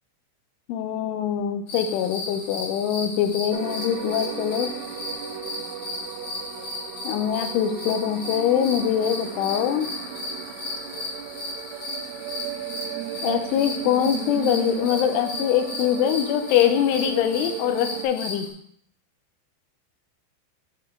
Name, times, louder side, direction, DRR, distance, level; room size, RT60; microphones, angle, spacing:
voice 1, 0.7-4.7 7.0-9.9 13.2-18.5, left 10 dB, 80° left, 8 dB, 3.0 m, -23 dB
sound 1, 1.7-18.5, left 2 dB, 60° left, 1.5 m, -35 dB
sound 2, 3.5-18.0, right 9 dB, 80° right, 3.2 m, -35 dB
9.1 x 5.4 x 3.7 m, 0.65 s
omnidirectional pair, 5.7 m